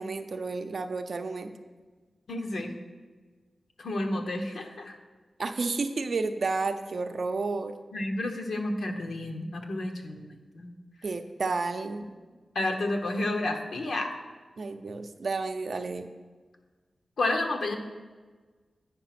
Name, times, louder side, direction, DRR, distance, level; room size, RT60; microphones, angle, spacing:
voice 1, 0.0-1.5 5.4-7.7 11.0-12.0 14.6-16.1, right 3 dB, 60° right, 7 dB, 0.6 m, -31 dB
voice 2, 2.3-2.7 3.8-5.0 7.9-10.7 12.5-14.1 17.2-17.8, left 2 dB, 70° left, 3 dB, 1.0 m, -31 dB
8.8 x 5.6 x 5.9 m, 1.4 s
wide cardioid pair, 120°, 0 cm